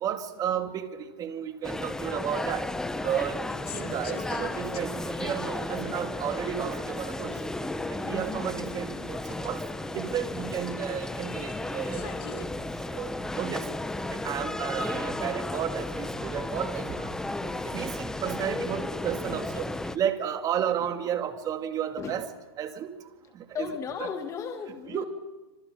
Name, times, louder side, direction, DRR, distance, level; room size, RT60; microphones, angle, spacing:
voice 1, 0.0-2.6 2.9-3.5 3.7-7.5 7.9-9.6 9.9-12.5 12.9-13.7 14.1-17.1 17.7-19.7 19.9-22.3 22.6-22.9 23.3-23.4 24.9-25.0, right 9 dB, 25° right, 7 dB, 2.4 m, -32 dB
sound 1, 1.6-20.0, left 2 dB, 5° left, 0.9 m, -34 dB
sound 2, 3.0-12.5, left 11 dB, 60° left, 2.0 m, -48 dB
voice 2, 7.1-7.5 8.0-8.6 11.8-12.0 14.9-15.0 18.3-18.5 20.8-20.9 22.0-22.2 23.5-25.0, left 7 dB, 25° left, 6 dB, 1.9 m, -38 dB
28.0 x 26.5 x 5.1 m, 1.1 s
hypercardioid pair, 135°, 13 cm